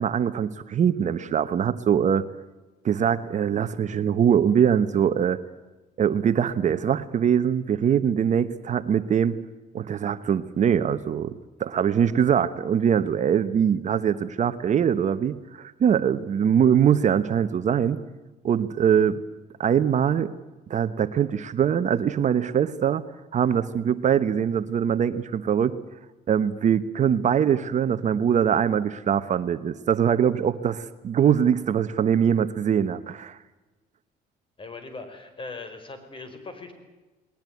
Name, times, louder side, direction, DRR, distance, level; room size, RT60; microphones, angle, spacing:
voice 1, 0.0-2.3 2.8-5.4 6.0-9.3 9.7-11.3 11.6-18.0 18.4-19.2 19.6-20.3 20.7-23.0 23.3-25.7 26.3-33.4, right 8 dB, 45° right, 12 dB, 1.1 m, -22 dB
voice 2, 34.6-36.7, left 3 dB, 30° left, 9 dB, 5.1 m, -39 dB
20.0 x 19.5 x 9.3 m, 1.1 s
cardioid pair, 110°, 17 cm